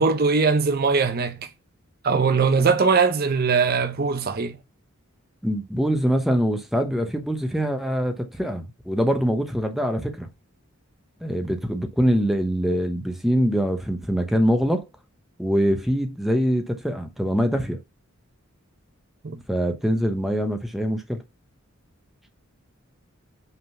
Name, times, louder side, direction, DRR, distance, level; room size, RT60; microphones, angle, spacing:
voice 1, 0.0-1.5 2.0-4.6 19.2-19.4, right 5 dB, 50° right, 0.7 m, -21 dB
voice 2, 5.4-10.3 11.2-14.8 15.4-17.8 19.5-21.2, equal, ahead, 0.9 m, -23 dB
5.6 x 3.8 x 5.6 m
head